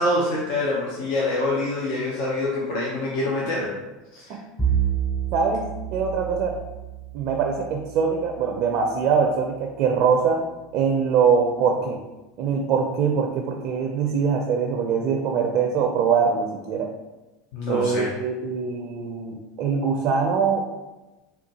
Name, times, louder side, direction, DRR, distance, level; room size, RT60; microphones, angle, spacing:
voice 1, 0.0-3.7 4.1-4.4 17.5-18.1, left 2 dB, 60° left, -3 dB, 0.6 m, -25 dB
Bowed string instrument, 4.6-9.2, right 8 dB, 5° left, 0.6 m, -29 dB
voice 2, 5.3-6.6 7.1-10.4 10.7-12.0 12.4-16.9 17.7-20.7, right 6 dB, 55° right, 2 dB, 0.4 m, -23 dB
3.6 x 2.2 x 2.7 m, 1.1 s
hypercardioid pair, 80°, 0 cm